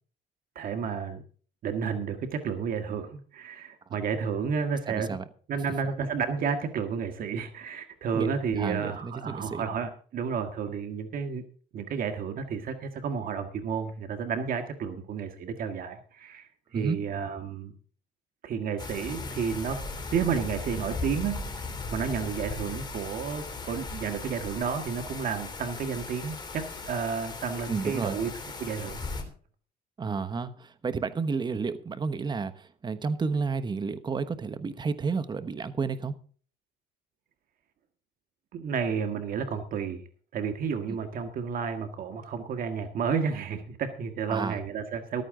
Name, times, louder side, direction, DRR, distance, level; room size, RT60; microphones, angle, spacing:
voice 1, 0.6-1.2 1.6-5.2 5.5-11.4 11.7-17.7 18.4-19.8 20.1-28.3 28.6-29.0 38.5-40.0 40.3-45.2, right 6 dB, 55° right, 1.6 m, -31 dB
voice 2, 4.9-5.2 8.1-8.3 8.6-9.7 16.7-17.0 27.7-28.2 30.0-36.1 40.9-41.0 44.3-44.6, right 5 dB, 25° right, 1.1 m, -31 dB
sound 1, 18.8-29.2, left 3 dB, 25° left, 3.3 m, -38 dB
14.5 x 13.0 x 3.8 m
cardioid pair, 110°, 17 cm